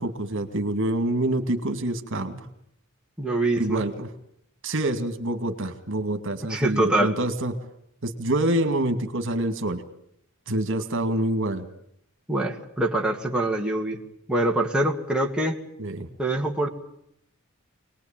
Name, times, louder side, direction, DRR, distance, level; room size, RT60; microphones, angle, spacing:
voice 1, 0.0-2.5 3.6-4.1 4.6-7.5 8.0-9.8 10.5-11.7 15.8-16.1, right 1 dB, 60° right, 8 dB, 2.3 m, -26 dB
voice 2, 3.2-3.8 6.5-7.1 12.3-14.0 14.3-15.6 16.2-16.7, right 1 dB, 5° right, 0 dB, 2.1 m, -24 dB
26.0 x 20.0 x 9.0 m, 0.72 s
head